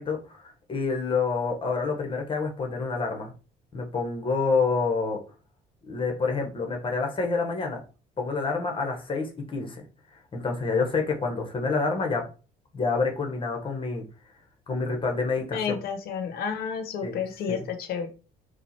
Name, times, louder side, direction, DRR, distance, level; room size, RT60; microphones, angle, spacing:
voice 1, 0.0-3.3 3.7-5.2 5.9-7.8 8.2-9.8 10.3-12.3 12.7-14.0 14.7-15.8 17.0-17.2 17.5-17.6, left 4 dB, 30° left, 2 dB, 1.2 m, -28 dB
voice 2, 15.5-18.1, left 6 dB, 65° left, 6 dB, 1.0 m, -31 dB
4.4 x 2.4 x 4.3 m, 0.35 s
cardioid pair, 110°, 17 cm